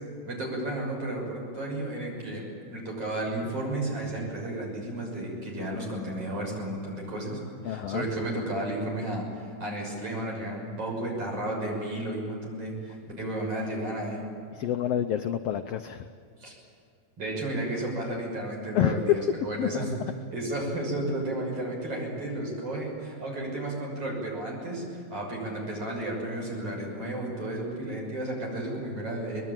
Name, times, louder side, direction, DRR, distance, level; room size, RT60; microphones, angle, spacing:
voice 1, 0.3-14.2 16.4-16.5 17.2-19.9 20.3-29.4, right 1 dB, 45° right, -1 dB, 7.4 m, -33 dB
voice 2, 7.6-8.0 14.5-16.1 18.7-19.2 19.6-19.9, left 11 dB, 80° left, 9 dB, 1.4 m, -27 dB
23.5 x 21.0 x 9.0 m, 2.4 s
omnidirectional pair, 3.6 m